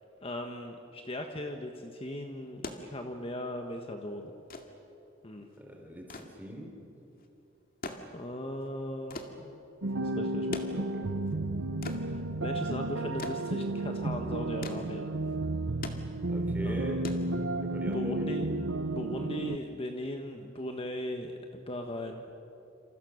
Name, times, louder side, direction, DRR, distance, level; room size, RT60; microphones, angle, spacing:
voice 1, 0.2-4.3 5.2-5.5 8.1-9.5 10.0-10.5 12.1-15.1 16.6-16.8 17.9-18.6 18.9-22.2, left 1 dB, 30° left, 4 dB, 1.5 m, -38 dB
sound 1, 2.4-17.9 19.1-19.2, left 2 dB, 50° left, 2.2 m, -45 dB
voice 2, 5.6-6.7 10.7-11.1 16.3-17.0 17.6-18.3, equal, 10° right, 1 dB, 4.2 m, -42 dB
sound 2, 9.8-19.6, right 2 dB, 90° right, 0.9 m, -32 dB
28.5 x 28.0 x 6.6 m, 2.9 s
head